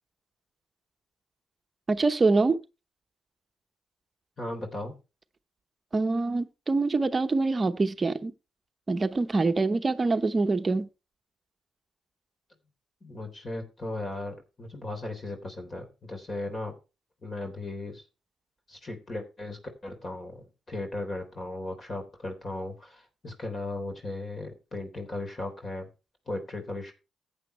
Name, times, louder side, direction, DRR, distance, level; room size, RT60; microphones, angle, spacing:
voice 1, 1.9-2.6 5.9-8.3 8.9-10.9, right 3 dB, 30° right, 0.9 m, -25 dB
voice 2, 4.4-5.0 13.0-16.7 17.2-18.0 18.7-25.9 26.3-26.9, left 2 dB, 35° left, 3.6 m, -36 dB
14.5 x 8.8 x 3.2 m
cardioid pair, 90°, 0 cm